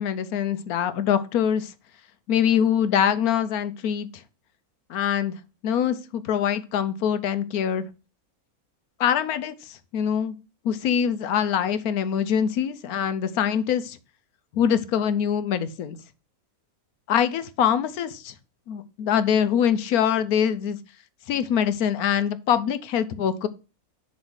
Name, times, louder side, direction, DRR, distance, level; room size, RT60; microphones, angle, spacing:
voice 1, 0.0-1.7 2.3-4.1 4.9-5.4 5.6-7.8 9.0-10.4 10.6-14.0 14.5-16.0 17.1-18.3 18.7-20.8 21.3-23.5, left 8 dB, 85° left, 13 dB, 1.2 m, -24 dB
7.2 x 3.2 x 6.2 m, 0.31 s
omnidirectional pair, 1.6 m